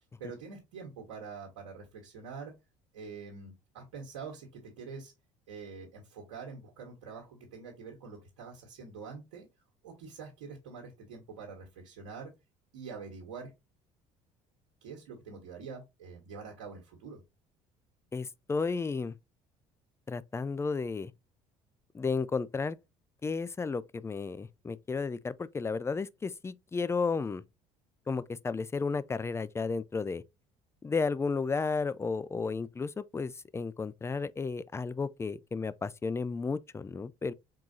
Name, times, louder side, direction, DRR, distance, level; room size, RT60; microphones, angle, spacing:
voice 1, 0.2-2.5 2.9-5.1 5.5-9.5 9.8-12.3 12.7-13.5 14.8-17.2, right 5 dB, 85° right, 1.4 m, -45 dB
voice 2, 18.1-19.1 20.1-21.1 21.9-22.8 23.2-27.4 28.1-30.2 30.8-37.3, left 4 dB, 15° left, 0.4 m, -33 dB
4.7 x 3.7 x 2.7 m
hypercardioid pair, 70°, 16 cm